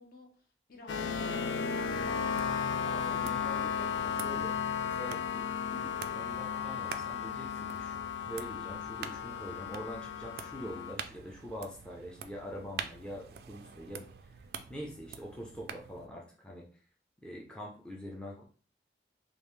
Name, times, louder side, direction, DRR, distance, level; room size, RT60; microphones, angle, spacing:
voice 1, 0.0-2.9, left 2 dB, 50° left, 1 dB, 0.8 m, -55 dB
sound 1, 0.9-10.9, left 7 dB, 75° left, 0.3 m, -34 dB
sound 2, 2.3-16.1, right 6 dB, 55° right, 0.3 m, -47 dB
voice 2, 2.8-4.6 4.8-16.6 17.2-18.4, equal, 5° left, -3 dB, 0.5 m, -45 dB
3.5 x 2.4 x 3.2 m, 0.41 s
head